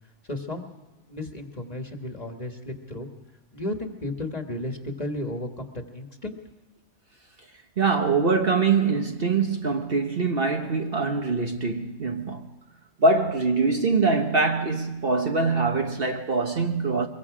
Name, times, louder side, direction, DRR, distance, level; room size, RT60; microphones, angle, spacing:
voice 1, 0.3-0.7 1.1-3.1 3.5-6.4, left 1 dB, 30° left, 1.7 m, -33 dB
voice 2, 7.8-12.5 13.0-17.1, right 4 dB, 45° right, 1.2 m, -23 dB
24.0 x 22.5 x 4.9 m
omnidirectional pair, 1.4 m